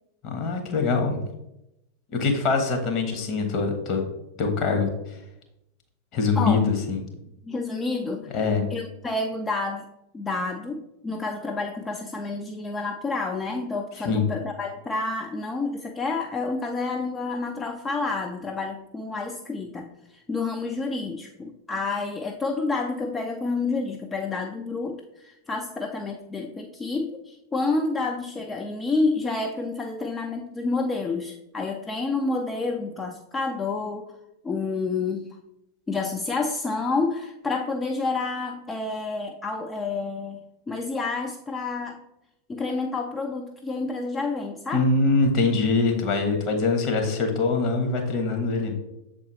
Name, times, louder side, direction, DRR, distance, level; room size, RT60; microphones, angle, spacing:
voice 1, 0.2-1.2 2.1-4.0 4.4-4.9 6.1-7.0 8.3-8.7 14.0-14.2 44.7-48.7, left 4 dB, 40° left, 4 dB, 1.2 m, -23 dB
voice 2, 7.4-9.9 10.1-19.9 20.1-34.1 34.4-35.4 35.9-40.4 40.7-42.0 42.5-44.9, left 3 dB, 15° left, 3 dB, 0.4 m, -29 dB
7.1 x 4.1 x 3.2 m, 0.88 s
figure-of-eight pair, 90°, 0 cm